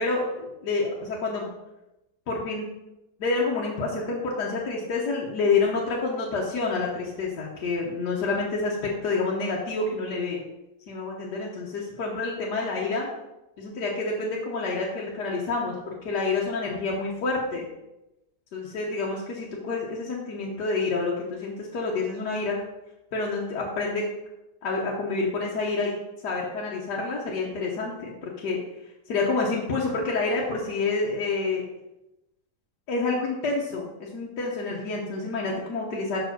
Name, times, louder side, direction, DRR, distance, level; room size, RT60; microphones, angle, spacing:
voice 1, 0.0-1.5 2.3-2.7 3.2-10.4 10.9-13.1 13.6-17.6 18.5-22.6 23.1-24.0 24.6-25.9 26.2-28.6 29.1-31.6 32.9-36.2, left 3 dB, 80° left, -3 dB, 1.6 m, -28 dB
6.0 x 4.6 x 5.9 m, 0.94 s
omnidirectional pair, 1.8 m